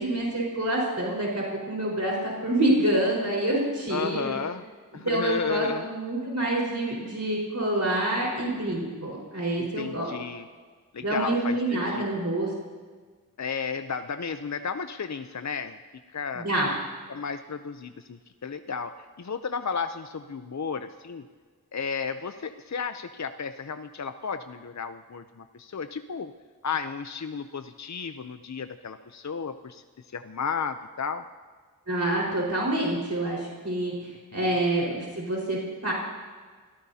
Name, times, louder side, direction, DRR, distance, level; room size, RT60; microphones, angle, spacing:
voice 1, 0.0-4.4 5.0-10.1 11.0-12.5 16.3-16.7 31.9-35.9, right 1 dB, 50° right, -4 dB, 4.7 m, -27 dB
voice 2, 3.9-4.6 4.9-5.9 9.6-10.5 10.9-12.0 13.4-15.8 16.1-16.5 17.1-18.9 19.2-21.2 21.7-26.3 26.6-31.2 34.3-34.5, left 5 dB, 50° left, 9 dB, 0.6 m, -33 dB
29.5 x 17.0 x 2.8 m, 1.5 s
wide cardioid pair, 40°, 36 cm